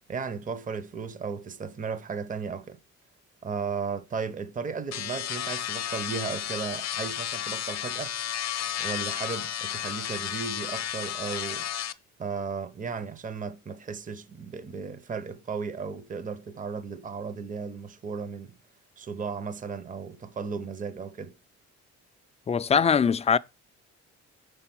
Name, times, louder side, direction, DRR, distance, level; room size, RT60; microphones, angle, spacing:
voice 1, 0.1-2.8 3.4-8.1 8.8-11.7 12.2-18.5 19.0-21.4, right 5 dB, 25° right, 0.7 m, -35 dB
sound 1, 4.9-11.9, left 11 dB, 60° left, 0.7 m, -33 dB
voice 2, 22.5-23.4, left 6 dB, 20° left, 0.4 m, -22 dB
6.8 x 3.8 x 5.9 m
cardioid pair, 90°, 30 cm